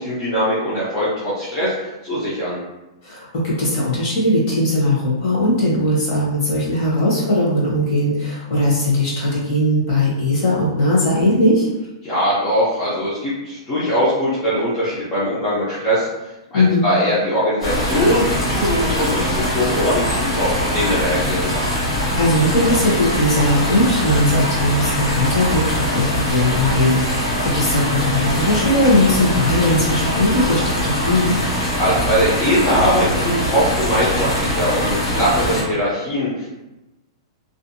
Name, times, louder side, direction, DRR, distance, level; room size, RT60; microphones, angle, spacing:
voice 1, 0.0-2.6 12.0-16.1 16.5-21.5 31.8-36.5, equal, 20° left, -10 dB, 0.5 m, -21 dB
voice 2, 3.0-11.7 16.5-16.8 22.2-31.4, left 1 dB, 35° left, -6 dB, 0.9 m, -19 dB
sound 1, 17.6-35.6, equal, 70° left, 1.2 m, -22 dB
2.5 x 2.2 x 2.6 m, 1.0 s
supercardioid pair, 180°, 3 cm